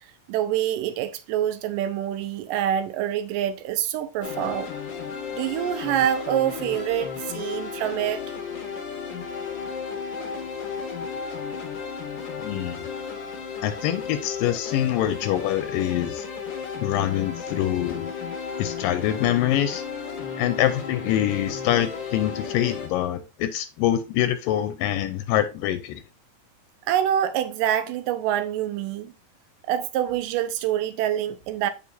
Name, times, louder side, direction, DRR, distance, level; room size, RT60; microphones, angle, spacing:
voice 1, 0.3-4.7 5.3-8.3 26.9-29.1 29.7-31.7, right 11 dB, 80° right, 2.2 m, -26 dB
sound 1, 4.2-22.9, left 6 dB, 65° left, 1.1 m, -34 dB
voice 2, 12.4-12.9 13.6-16.3 16.8-18.1 18.6-19.8 20.4-26.0, left 12 dB, 80° left, 2.2 m, -25 dB
6.9 x 6.4 x 2.6 m
omnidirectional pair, 4.1 m